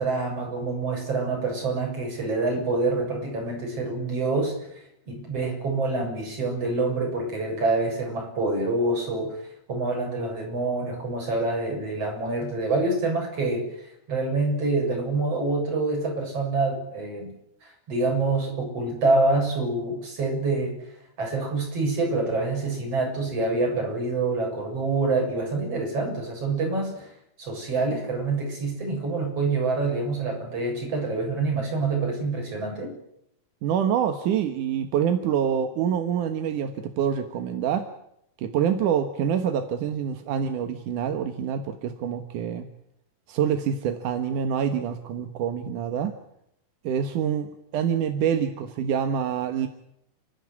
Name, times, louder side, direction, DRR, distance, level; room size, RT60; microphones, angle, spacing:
voice 1, 0.0-9.4 9.7-17.3 17.6-20.8 21.2-27.1 27.4-32.9, right 3 dB, 35° right, 0 dB, 8.4 m, -26 dB
voice 2, 33.6-37.9 38.4-42.7 43.3-46.2 46.8-49.7, right 8 dB, 65° right, 7 dB, 2.3 m, -26 dB
30.0 x 13.5 x 9.6 m, 0.76 s
omnidirectional pair, 4.9 m